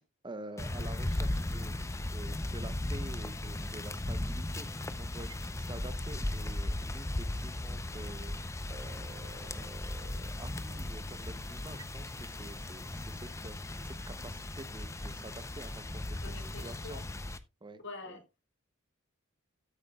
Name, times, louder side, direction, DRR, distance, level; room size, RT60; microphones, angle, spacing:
voice 1, 0.2-17.0 17.6-18.2, right 2 dB, 20° right, 0.7 m, -48 dB
sound 1, 0.6-17.4, left 1 dB, 15° left, 0.5 m, -37 dB
voice 2, 16.2-17.0 17.8-18.4, left 3 dB, 60° left, 1.8 m, -46 dB
13.0 x 8.2 x 2.3 m
head